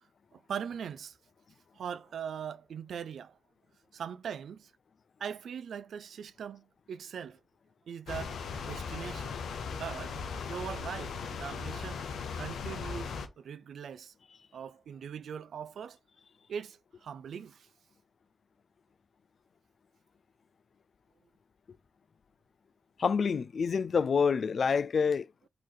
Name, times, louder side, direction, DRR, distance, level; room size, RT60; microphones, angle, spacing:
voice 1, 0.3-1.2 1.7-3.4 3.9-4.7 5.2-7.4 7.9-9.4 9.7-10.2 10.5-12.0 12.4-14.1 14.5-16.0 16.5-17.7, right 7 dB, 75° right, 0.3 m, -41 dB
sound 1, 8.1-13.3, left 5 dB, 80° left, 0.8 m, -38 dB
voice 2, 23.0-25.3, left 6 dB, 60° left, 0.3 m, -27 dB
4.6 x 3.0 x 3.9 m
supercardioid pair, 45°, 0 cm